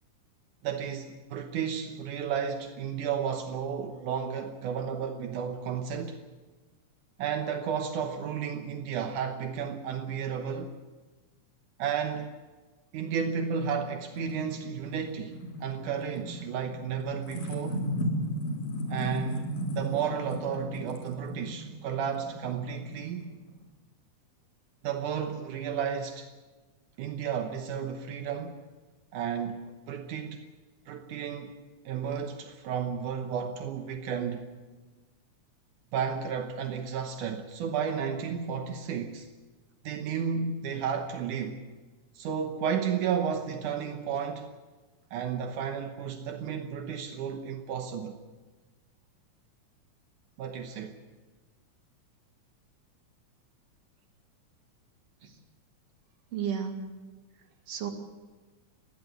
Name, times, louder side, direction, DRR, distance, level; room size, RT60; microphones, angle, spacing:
voice 1, 0.6-6.2 7.2-10.8 11.8-12.3 12.9-17.9 18.9-19.5 19.7-23.3 24.8-26.3 27.0-28.6 29.1-30.4 30.9-31.6 31.9-34.4 35.9-39.3 39.8-41.6 42.2-44.5 45.1-48.2 50.4-51.0, right 7 dB, 80° right, 2.6 m, -32 dB
sound 1, 14.1-23.6, equal, 90° left, 5.1 m, -36 dB
voice 2, 56.3-56.9 57.3-57.9, right 7 dB, 55° right, 3.0 m, -34 dB
29.0 x 11.5 x 8.0 m
omnidirectional pair, 3.5 m